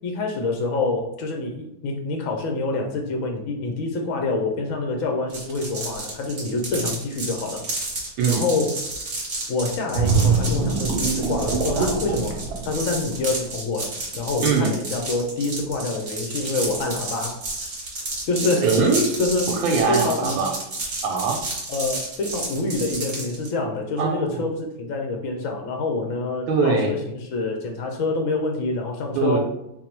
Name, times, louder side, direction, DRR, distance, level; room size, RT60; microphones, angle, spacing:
voice 1, 0.0-7.6 8.3-8.8 9.5-12.4 12.6-17.4 18.3-18.7 19.2-19.5 19.9-20.4 21.7-29.4, left 3 dB, 75° left, 2 dB, 0.7 m, -26 dB
sound 1, 5.3-23.5, right 2 dB, 45° right, 1.3 m, -31 dB
sound 2, 9.9-13.5 14.0-14.2, right 4 dB, 70° right, 1.0 m, -23 dB
voice 2, 14.4-14.7 18.6-19.1 19.5-20.5 21.0-21.4 24.0-24.4 26.5-27.0 29.1-29.4, right 4 dB, 90° right, 1 dB, 1.4 m, -22 dB
3.6 x 2.1 x 4.3 m, 0.86 s
omnidirectional pair, 2.1 m